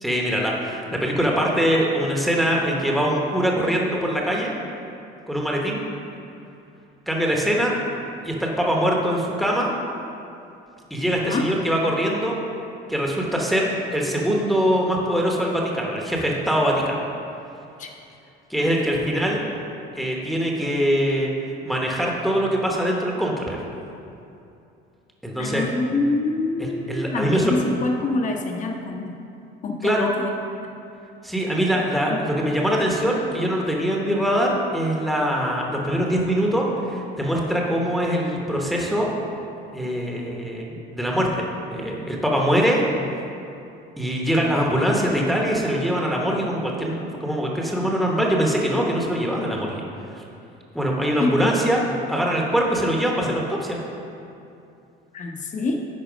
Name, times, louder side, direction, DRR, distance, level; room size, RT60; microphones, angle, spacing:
voice 1, 0.0-4.5 5.3-5.8 7.1-7.8 8.2-9.7 10.9-12.4 12.9-17.0 18.5-19.4 19.9-21.3 21.6-23.6 25.2-25.6 26.6-27.5 29.8-30.1 31.2-39.1 39.7-41.4 41.7-42.8 44.0-49.8 50.1-50.2 50.7-51.8 52.1-53.8, equal, ahead, -2 dB, 1.0 m, -23 dB
voice 2, 18.6-19.0 25.4-29.1 29.6-30.3 31.7-31.8 32.1-32.2 51.2-51.6 55.1-55.9, left 3 dB, 40° left, 2 dB, 1.0 m, -26 dB
10.5 x 4.1 x 5.1 m, 2.7 s
cardioid pair, 120°, 20 cm